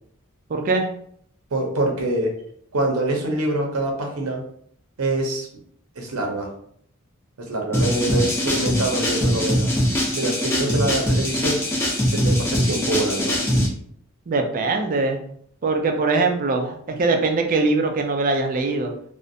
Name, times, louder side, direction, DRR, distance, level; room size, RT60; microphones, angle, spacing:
voice 1, 0.5-0.9 14.3-15.2 15.6-18.9, right 3 dB, 40° right, 4 dB, 0.3 m, -22 dB
voice 2, 1.5-2.3 2.7-4.4 5.0-5.5 6.0-6.5 7.4-9.7 10.1-11.6 12.1-13.3, right 2 dB, 80° right, 1 dB, 0.6 m, -25 dB
sound 1, 7.7-13.7, equal, 10° left, 0.5 m, -22 dB
2.4 x 2.1 x 2.6 m, 0.64 s
head